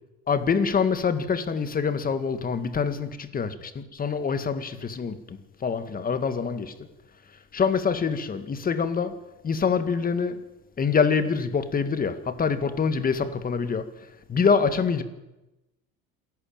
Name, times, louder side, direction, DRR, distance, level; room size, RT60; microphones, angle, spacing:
voice 1, 0.3-6.7 7.5-9.2 9.4-10.4 10.8-13.9 14.3-15.0, left 5 dB, 30° left, 2.0 m, -25 dB
28.0 x 11.5 x 9.0 m
supercardioid pair, 115°, 30 cm